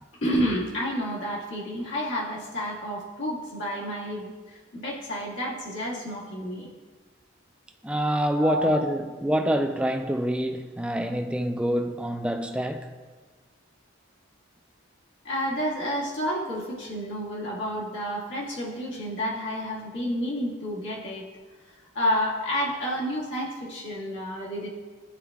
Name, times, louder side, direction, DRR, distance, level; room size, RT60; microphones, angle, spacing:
voice 1, 0.2-6.7 8.3-8.8 15.2-21.3 22.0-24.7, equal, 85° left, 1.7 m, -30 dB
voice 2, 7.8-12.9, equal, 5° right, 0.3 m, -26 dB
12.0 x 4.5 x 2.3 m
head